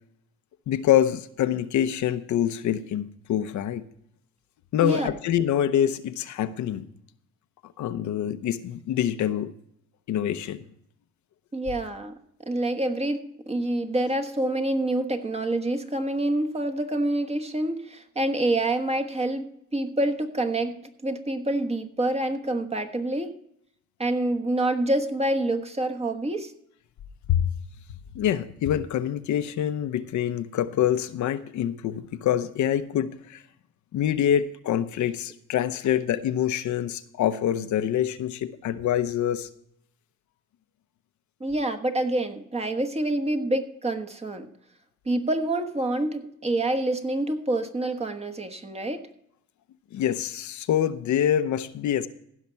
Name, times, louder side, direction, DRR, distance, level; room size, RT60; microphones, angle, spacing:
voice 1, 0.7-3.8 4.7-6.9 7.8-9.5 10.1-10.6 27.3-27.5 28.1-33.4 33.9-39.5 49.9-52.1, left 10 dB, 70° left, 12 dB, 0.8 m, -25 dB
voice 2, 4.8-5.2 11.5-13.2 13.5-23.3 24.0-26.5 41.4-44.5 45.0-49.1, right 1 dB, 20° right, 6 dB, 1.2 m, -27 dB
15.5 x 5.8 x 5.6 m, 0.73 s
cardioid pair, 90°, 30 cm